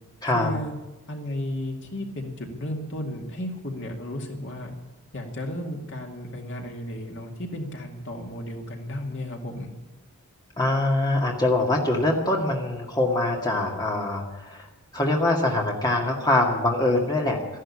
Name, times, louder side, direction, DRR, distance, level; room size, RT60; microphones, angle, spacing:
voice 1, 0.2-0.7 1.1-4.7 5.1-9.7, left 1 dB, 55° left, 2 dB, 2.2 m, -34 dB
voice 2, 10.6-14.7 14.9-17.6, left 2 dB, 20° left, 0 dB, 2.0 m, -23 dB
14.0 x 11.0 x 8.6 m, 1.0 s
head